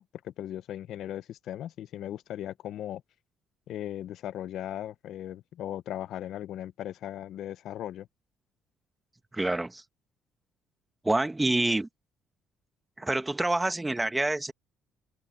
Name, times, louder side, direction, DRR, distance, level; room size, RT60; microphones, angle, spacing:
voice 1, 0.0-3.0 3.7-8.1, left 12 dB, 70° left, 0.8 m, -38 dB
voice 2, 9.3-9.8 11.0-11.9 13.0-14.5, right 2 dB, 15° right, 1.6 m, -27 dB
open air
supercardioid pair, 85°, 0 cm